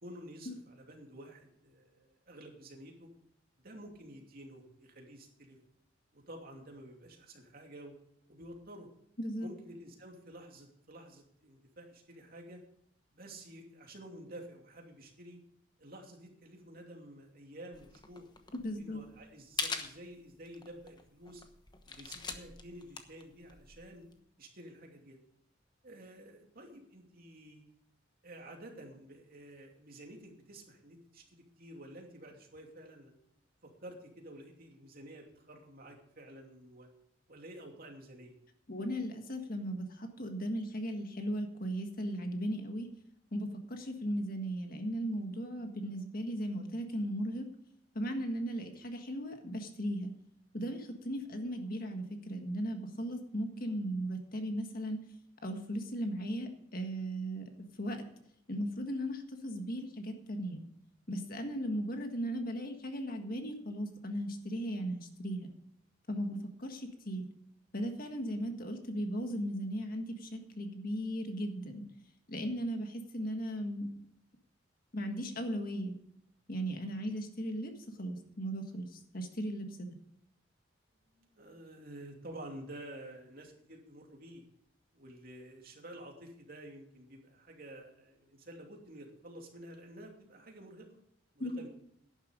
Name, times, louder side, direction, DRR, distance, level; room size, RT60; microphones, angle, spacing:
voice 1, 0.0-3.1 3.6-5.6 6.1-7.9 8.3-8.9 9.4-12.6 13.1-15.4 15.8-18.3 18.8-21.4 21.9-24.1 24.4-25.2 25.8-27.6 28.2-33.2 33.6-36.9 37.3-38.3 77.0-77.1 81.1-84.4 84.9-90.9 91.3-91.7, right 1 dB, 50° right, 1 dB, 2.7 m, -50 dB
voice 2, 9.2-9.5 18.6-19.0 38.7-42.9 43.3-47.4 47.9-50.1 50.5-55.0 55.4-57.4 57.8-58.0 58.5-60.6 61.1-65.5 66.1-67.3 67.7-71.8 72.3-73.9 74.9-75.9 76.5-79.9 91.4-91.6, equal, 50° left, 5 dB, 1.7 m, -37 dB
sound 1, 17.7-24.2, left 4 dB, 25° left, 1.1 m, -43 dB
11.5 x 10.0 x 5.2 m, 0.73 s
head